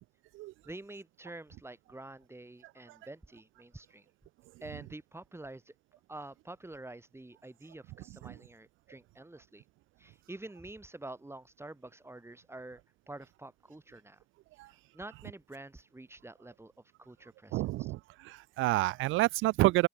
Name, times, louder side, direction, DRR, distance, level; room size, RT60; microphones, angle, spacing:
voice 1, 0.6-4.0 4.6-5.7 6.1-9.6 10.0-12.8 13.1-14.2 14.9-16.7 17.0-17.9, right 2 dB, 10° right, 5.3 m, -47 dB
voice 2, 17.5-19.9, right 19 dB, 90° right, 0.4 m, -29 dB
open air
cardioid pair, 90°, 20 cm